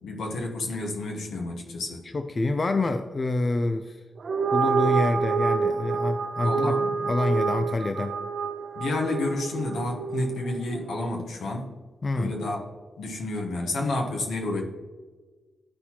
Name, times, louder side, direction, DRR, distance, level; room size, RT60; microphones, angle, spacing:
voice 1, 0.0-2.1 6.4-7.1 8.7-11.7 12.2-12.6 13.0-14.6, left 2 dB, 85° left, 1 dB, 1.1 m, -30 dB
voice 2, 2.1-4.0 4.5-6.7 7.1-8.1 12.0-12.3, left 2 dB, 50° left, 8 dB, 0.4 m, -26 dB
sound 1, 4.2-10.8, right 5 dB, 65° right, 0.4 m, -27 dB
11.5 x 4.1 x 2.9 m, 1.4 s
supercardioid pair, 40°, 0 cm